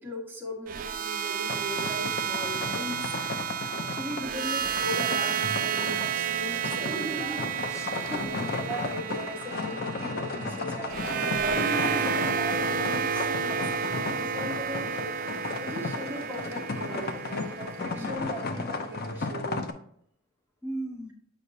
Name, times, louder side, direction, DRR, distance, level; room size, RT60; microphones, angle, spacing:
voice 1, 0.0-3.3 3.6-7.4 8.1-19.6, equal, 10° right, -4 dB, 1.4 m, -39 dB
sound 1, 0.7-18.8, right 7 dB, 45° right, 0.4 m, -31 dB
sound 2, 1.5-19.7, left 3 dB, 50° left, 0.6 m, -35 dB
voice 2, 6.8-8.4 11.5-12.2 13.8-14.2 17.8-18.4 20.6-21.1, right 1 dB, 15° left, 2 dB, 0.9 m, -38 dB
8.2 x 5.2 x 2.7 m, 0.66 s
head